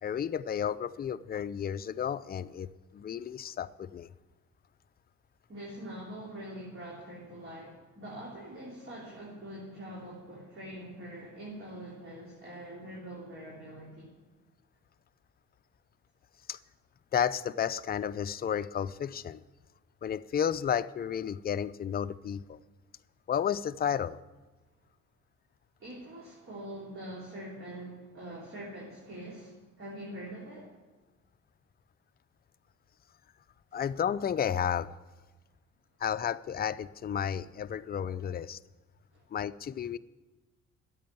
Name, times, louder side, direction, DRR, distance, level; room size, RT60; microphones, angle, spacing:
voice 1, 0.0-4.1 16.5-16.6 17.1-19.4 20.0-22.6 23.3-24.2 33.7-34.9 36.0-38.6 39.3-40.0, left 8 dB, 30° left, 12 dB, 0.4 m, -32 dB
voice 2, 5.5-14.1 25.8-30.7 33.7-33.8 39.1-39.2, right 1 dB, 45° right, -5 dB, 3.4 m, -44 dB
10.0 x 7.8 x 9.3 m, 1.2 s
cardioid pair, 90°, 30 cm